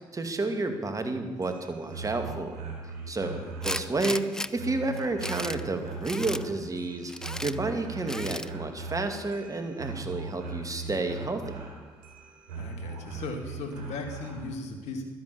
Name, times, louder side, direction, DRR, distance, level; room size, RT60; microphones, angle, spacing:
voice 1, 0.1-2.6 3.1-7.1 7.4-11.4, right 2 dB, 30° right, 6 dB, 2.3 m, -31 dB
sound 1, 1.3-14.5, right 4 dB, 85° right, 3.1 m, -40 dB
Tools, 3.6-4.5 5.0-5.6 6.0-6.4 7.1-7.5 8.1-8.5, left 1 dB, 5° left, 0.6 m, -34 dB
voice 2, 12.5-15.0, left 3 dB, 75° left, 5 dB, 2.3 m, -37 dB
12.5 x 10.5 x 6.9 m, 1.5 s
hypercardioid pair, 55°, 12 cm